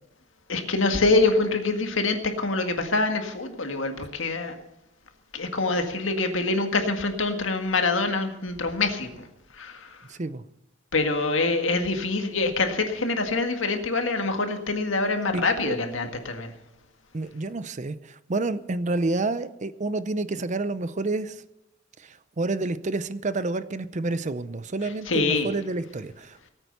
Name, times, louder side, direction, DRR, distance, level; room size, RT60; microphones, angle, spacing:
voice 1, 0.5-4.6 5.3-9.2 9.6-10.0 10.9-16.5 25.1-25.5, left 3 dB, 75° left, 6 dB, 1.9 m, -25 dB
voice 2, 10.1-10.4 15.3-15.8 17.1-21.4 22.0-26.5, right 2 dB, 40° right, 14 dB, 0.6 m, -29 dB
18.0 x 9.0 x 6.8 m, 0.91 s
head